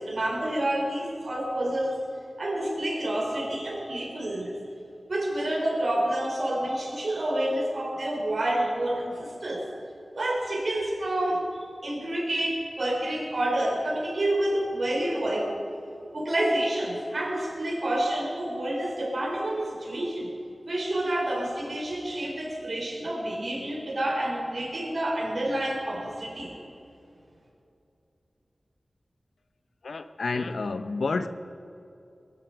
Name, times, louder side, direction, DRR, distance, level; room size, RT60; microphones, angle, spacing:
voice 1, 0.0-2.0 2.4-4.6 5.1-9.6 10.1-15.5 16.1-20.3 20.7-26.5, right 1 dB, 65° right, 4.4 m, -28 dB
voice 2, 29.8-31.3, left 3 dB, 90° left, 0.7 m, -29 dB
20.0 x 11.0 x 4.7 m
wide cardioid pair, 65°, 0 cm